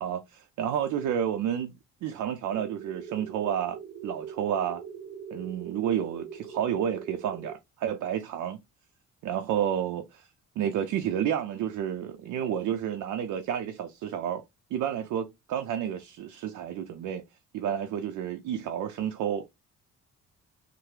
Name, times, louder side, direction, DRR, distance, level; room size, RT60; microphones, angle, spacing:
voice 1, 0.0-1.7 2.0-4.8 5.3-8.6 9.2-10.3 10.6-14.4 14.7-17.2 17.5-19.5, right 9 dB, 75° right, 0.5 m, -30 dB
sound 1, 2.5-7.5, right 6 dB, 30° right, 0.7 m, -42 dB
3.2 x 2.0 x 3.2 m
cardioid pair, 90°, 30 cm